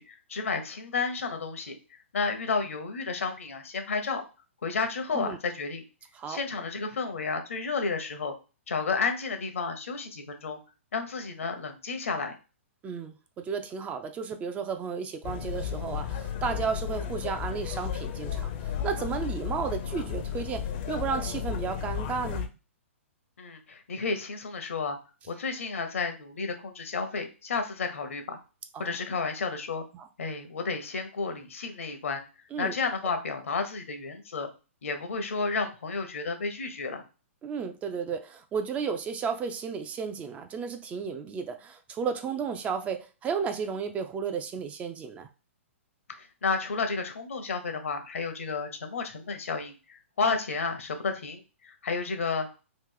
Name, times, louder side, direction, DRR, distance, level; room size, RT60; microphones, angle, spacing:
voice 1, 0.0-4.2 4.6-5.8 6.3-8.3 8.7-10.6 10.9-12.3 23.4-25.0 25.3-28.4 28.8-29.8 30.2-32.2 32.6-34.5 34.8-37.0 46.1-52.7, left 4 dB, 70° left, 6 dB, 0.8 m, -32 dB
voice 2, 12.8-22.5 28.7-29.0 29.9-30.1 32.5-32.8 37.4-45.3 50.2-50.4, right 6 dB, 20° right, 7 dB, 0.4 m, -33 dB
sound 1, 15.2-22.5, left 9 dB, 45° left, 0.5 m, -33 dB
3.1 x 2.5 x 3.7 m, 0.32 s
hypercardioid pair, 120°, 7 cm